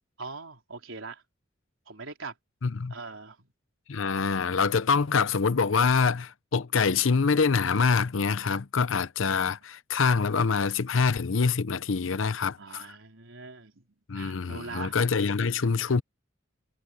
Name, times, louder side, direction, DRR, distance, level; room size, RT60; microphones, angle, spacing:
voice 1, 0.2-1.2 1.9-2.3 2.9-3.5 12.6-13.8 14.1-15.0, right 4 dB, 90° right, 3.9 m, -41 dB
voice 2, 2.6-2.9 3.9-12.9 14.1-16.0, left 5 dB, 80° left, 0.7 m, -25 dB
head